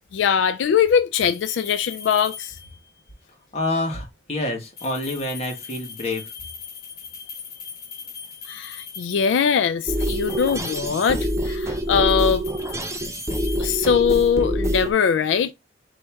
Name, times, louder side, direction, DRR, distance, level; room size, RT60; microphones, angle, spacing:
voice 1, 0.1-2.6 8.5-12.4 13.6-15.5, left 7 dB, 85° left, 0.3 m, -21 dB
sound 1, 1.1-2.9 4.6-9.4 9.9-11.5 11.8-14.2, left 6 dB, 60° left, 1.2 m, -40 dB
voice 2, 3.5-6.3, left 2 dB, 35° left, 1.5 m, -27 dB
sound 2, 9.9-14.9, equal, 15° right, 0.5 m, -26 dB
4.4 x 3.1 x 3.4 m
head